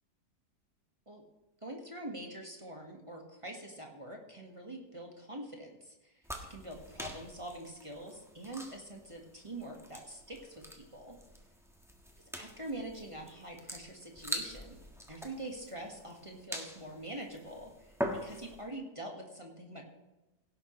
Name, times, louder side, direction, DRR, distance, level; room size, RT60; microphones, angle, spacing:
voice 1, 1.6-6.1 6.5-11.2 12.4-14.8 15.1-17.9 18.2-19.8, right 1 dB, 20° right, 0 dB, 1.7 m, -44 dB
sound 1, 6.2-18.7, equal, ahead, 1.3 m, -44 dB
17.0 x 10.5 x 3.2 m, 1.0 s
omnidirectional pair, 1.9 m